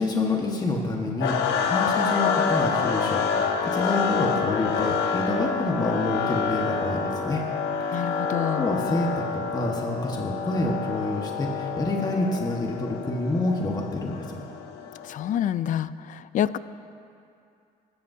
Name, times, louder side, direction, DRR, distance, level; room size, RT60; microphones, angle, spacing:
voice 1, 0.0-7.4 7.8-8.2 8.6-14.4, left 2 dB, 25° left, -1 dB, 1.5 m, -28 dB
sound 1, 1.2-15.3, left 6 dB, 85° left, 1.2 m, -27 dB
voice 2, 7.9-8.7 15.0-16.6, left 10 dB, 50° left, 15 dB, 0.4 m, -27 dB
23.5 x 13.5 x 2.8 m, 2.5 s
cardioid pair, 110°, 17 cm